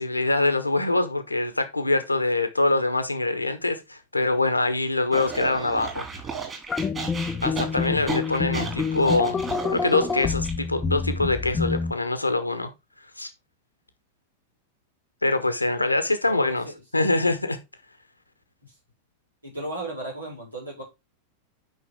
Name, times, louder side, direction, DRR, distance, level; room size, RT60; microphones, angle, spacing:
voice 1, 0.0-6.1 7.4-9.4 9.7-12.7 13.2-13.3 15.2-17.6, left 2 dB, 85° left, 1.2 m, -24 dB
sound 1, 5.1-10.5, right 5 dB, 25° right, 3.1 m, -34 dB
sound 2, 6.7-11.9, left 5 dB, 15° left, 0.6 m, -28 dB
voice 2, 16.2-16.7 18.6-18.7 19.4-20.8, right 2 dB, 85° right, 5.4 m, -35 dB
9.4 x 5.7 x 3.6 m
figure-of-eight pair, 90°, 0 cm